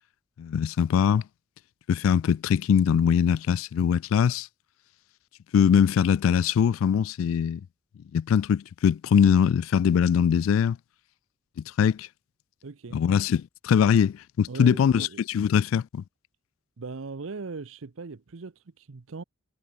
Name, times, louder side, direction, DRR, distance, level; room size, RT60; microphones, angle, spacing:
voice 1, 0.4-1.2 1.9-4.5 5.5-7.6 8.1-10.8 11.8-12.1 12.9-16.0, left 7 dB, 90° left, 0.3 m, -22 dB
voice 2, 12.6-13.0 14.5-15.2 16.8-19.2, right 4 dB, 85° right, 0.7 m, -39 dB
head